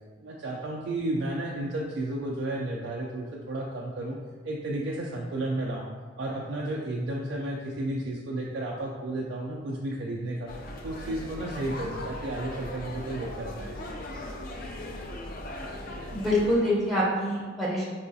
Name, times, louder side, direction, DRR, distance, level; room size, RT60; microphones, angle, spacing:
voice 1, 0.2-4.2 4.4-5.9 6.2-10.5 10.8-13.8, right 1 dB, 60° right, -2 dB, 0.3 m, -32 dB
sound 1, 10.5-16.6, left 1 dB, 50° left, 0.4 m, -38 dB
voice 2, 16.1-17.8, left 1 dB, ahead, -8 dB, 0.6 m, -25 dB
4.7 x 2.3 x 2.6 m, 1.5 s
head